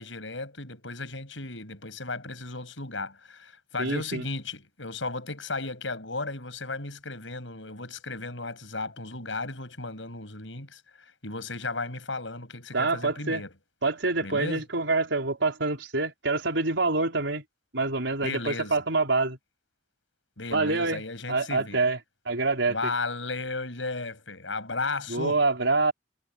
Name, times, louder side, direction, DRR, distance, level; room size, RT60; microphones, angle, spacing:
voice 1, 0.0-13.5 14.2-14.6 18.2-18.8 20.4-21.8 22.7-25.4, left 3 dB, 90° left, 8.0 m, -35 dB
voice 2, 3.8-4.2 12.7-13.4 13.8-17.4 17.7-19.4 20.5-21.0 21.3-22.0 22.3-22.9 25.1-25.9, right 3 dB, 85° right, 4.6 m, -26 dB
head